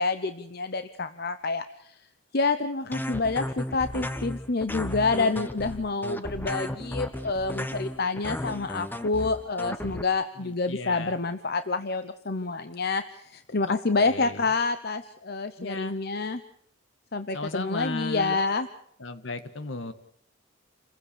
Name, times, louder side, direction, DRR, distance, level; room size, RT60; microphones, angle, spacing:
voice 1, 0.0-1.9 2.3-16.4 17.1-18.7, left 3 dB, 50° left, 10 dB, 0.9 m, -28 dB
sound 1, 2.9-10.0, left 1 dB, 10° left, 1.0 m, -34 dB
voice 2, 10.4-11.2 13.6-14.5 15.6-16.0 17.3-18.4 19.0-19.9, left 2 dB, 65° left, 10 dB, 1.7 m, -35 dB
28.5 x 15.5 x 7.0 m, 0.68 s
head